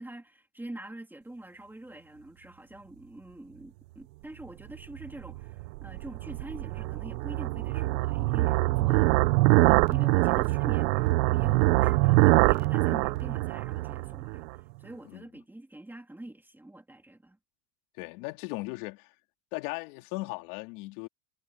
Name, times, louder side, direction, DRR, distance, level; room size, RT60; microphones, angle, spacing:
voice 1, 0.0-14.4 14.8-17.4, right 1 dB, 5° right, 3.1 m, -45 dB
sound 1, 5.0-14.5, right 21 dB, 85° right, 0.9 m, -24 dB
voice 2, 18.0-19.1 19.5-21.1, left 23 dB, 65° left, 3.1 m, -37 dB
cardioid pair, 165°, 48 cm